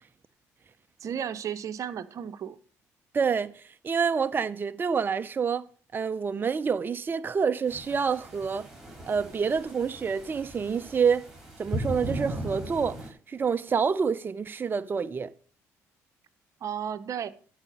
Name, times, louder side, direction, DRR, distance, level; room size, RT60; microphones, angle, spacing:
voice 1, 1.0-2.6 16.6-17.3, right 8 dB, 55° right, 0.8 m, -33 dB
voice 2, 3.1-5.6 5.9-8.7 9.1-11.3 11.6-13.0 13.3-15.3, right 6 dB, 30° right, 0.5 m, -27 dB
sound 1, 7.7-13.1, equal, 5° right, 4.5 m, -38 dB
12.0 x 5.0 x 5.2 m
supercardioid pair, 75°, 7 cm